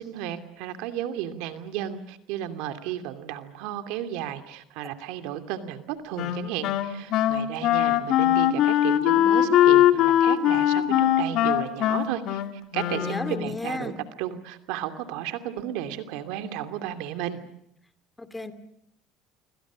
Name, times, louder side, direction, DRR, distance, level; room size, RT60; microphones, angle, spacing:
voice 1, 0.0-13.9 14.2-17.4, right 11 dB, 80° right, 9 dB, 2.6 m, -33 dB
Wind instrument woodwind instrument, 6.2-13.6, left 11 dB, 65° left, 2.8 m, -21 dB
voice 2, 12.9-14.0 18.2-18.5, left 2 dB, 10° left, 11 dB, 2.5 m, -33 dB
27.5 x 25.0 x 6.3 m, 0.75 s
supercardioid pair, 105°, 0 cm